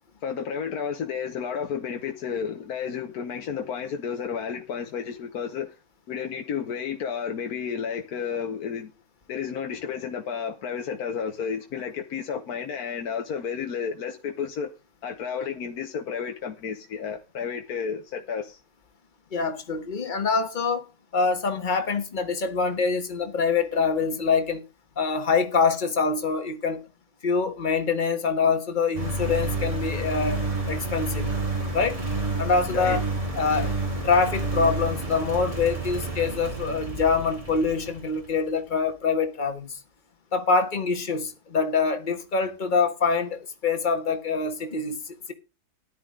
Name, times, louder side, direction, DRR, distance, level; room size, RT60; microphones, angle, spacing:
voice 1, 0.2-5.7 6.1-8.9 9.3-14.7 15.0-18.6 32.7-33.0 33.6-33.7, left 7 dB, 70° left, 1.4 m, -32 dB
voice 2, 19.3-20.8 21.1-24.6 25.0-26.8 27.2-31.3 31.7-32.0 32.4-33.0 33.3-33.7 34.0-39.8 40.3-45.3, left 5 dB, 30° left, 1.5 m, -25 dB
Engine, 28.9-38.4, right 2 dB, 20° right, 2.7 m, -30 dB
13.5 x 10.5 x 3.8 m
omnidirectional pair, 1.7 m